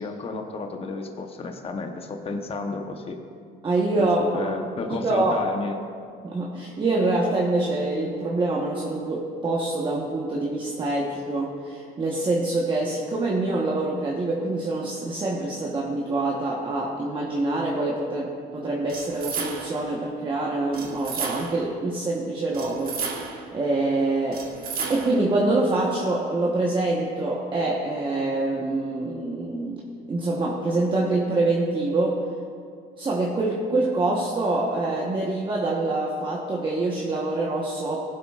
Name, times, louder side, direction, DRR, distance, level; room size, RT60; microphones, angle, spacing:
voice 1, 0.0-3.2 4.0-4.1 4.3-5.8, left 3 dB, 35° left, 4 dB, 0.9 m, -32 dB
voice 2, 3.6-4.2 4.9-5.4 6.2-23.2 23.5-24.5 24.9-29.8 30.1-32.2 33.0-38.0, right 2 dB, 30° right, -3 dB, 1.1 m, -25 dB
sound 1, 18.9-19.9 20.7-21.7 22.5-23.5 24.3-25.3, right 5 dB, 60° right, 1.2 m, -33 dB
18.0 x 8.0 x 2.4 m, 2.2 s
cardioid pair, 110°, 17 cm